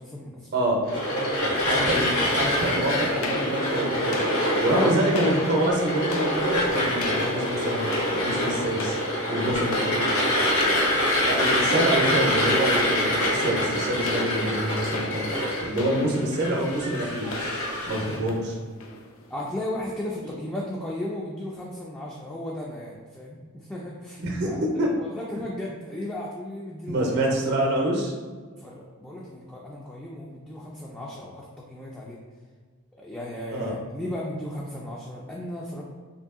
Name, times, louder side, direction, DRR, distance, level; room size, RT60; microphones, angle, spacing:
voice 1, 0.0-0.5 1.0-1.6 4.6-5.0 19.3-27.4 28.6-32.2 32.9-35.8, left 1 dB, 5° left, -5 dB, 0.3 m, -35 dB
sound 1, 0.9-18.2, equal, 90° left, 1.1 m, -25 dB
voice 2, 1.6-4.2 4.6-7.9 8.1-9.0 9.3-10.1 11.2-15.3 15.7-17.3 17.9-18.6 24.2-24.5 24.8-24.9 25.3-25.4 26.9-28.1 33.5-33.7, right 1 dB, 50° right, -1 dB, 0.6 m, -26 dB
sound 2, 3.2-19.6, left 3 dB, 70° left, 0.5 m, -37 dB
2.7 x 2.6 x 3.6 m, 1.5 s
head